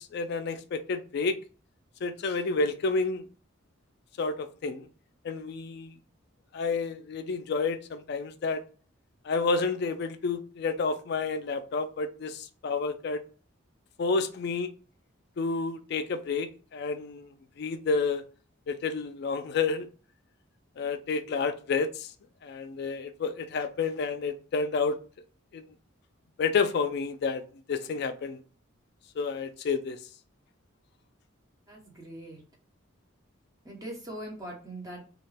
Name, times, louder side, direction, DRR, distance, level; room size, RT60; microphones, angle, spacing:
voice 1, 0.0-1.4 2.0-3.2 4.2-4.9 5.2-5.9 6.5-8.6 9.2-13.2 14.0-14.7 15.4-18.2 18.7-19.9 20.8-22.1 22.4-25.0 25.5-25.6 26.4-27.4 27.7-28.4 29.2-30.0, left 4 dB, 55° left, 0.3 m, -30 dB
voice 2, 31.7-32.4 33.6-35.1, right 1 dB, 20° right, 0.9 m, -41 dB
2.3 x 2.1 x 3.3 m
head